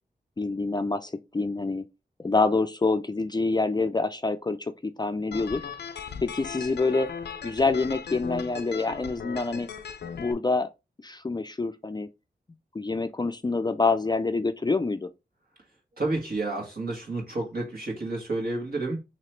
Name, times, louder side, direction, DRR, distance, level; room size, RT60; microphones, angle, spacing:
voice 1, 0.4-1.8 2.2-5.6 6.2-7.1 7.4-9.7 10.2-10.7 11.0-12.1 12.7-15.1, left 3 dB, 25° left, 0.4 m, -26 dB
sound 1, 5.3-10.3, left 7 dB, 90° left, 0.4 m, -38 dB
voice 2, 16.0-19.0, right 2 dB, 65° right, 1.7 m, -30 dB
3.0 x 2.9 x 4.3 m
wide cardioid pair, 65°, 17 cm